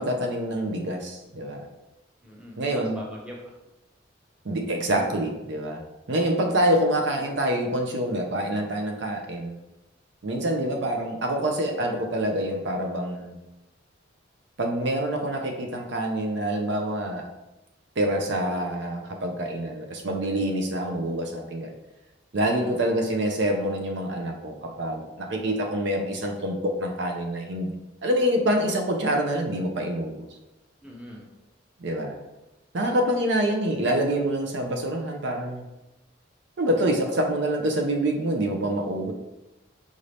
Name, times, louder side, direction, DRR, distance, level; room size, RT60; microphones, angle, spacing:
voice 1, 0.0-1.7 2.6-3.0 4.4-5.8 6.1-9.6 10.2-13.4 14.6-17.2 18.0-21.7 22.3-27.7 28.0-30.2 31.8-32.2 32.7-35.6 36.6-39.1, right 1 dB, 65° right, 3 dB, 0.5 m, -26 dB
voice 2, 2.2-3.5 22.4-22.7 30.8-31.2, equal, 5° right, -3 dB, 0.7 m, -41 dB
5.0 x 2.7 x 3.2 m, 0.97 s
head